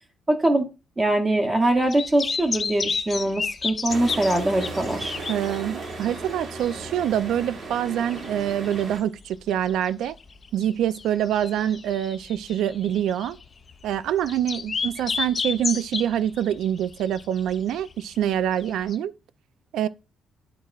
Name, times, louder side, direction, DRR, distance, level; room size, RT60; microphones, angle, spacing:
voice 1, 0.3-0.7 1.0-5.1, right 1 dB, 15° right, 0.7 m, -22 dB
sound 1, 1.7-19.0, left 5 dB, 30° left, 0.3 m, -33 dB
sound 2, 3.9-9.0, right 3 dB, 50° right, 1.1 m, -36 dB
voice 2, 5.3-10.2 10.5-13.4 13.8-19.1 19.7-19.9, right 10 dB, 80° right, 0.3 m, -25 dB
11.5 x 4.2 x 2.4 m
cardioid pair, 175°, 0 cm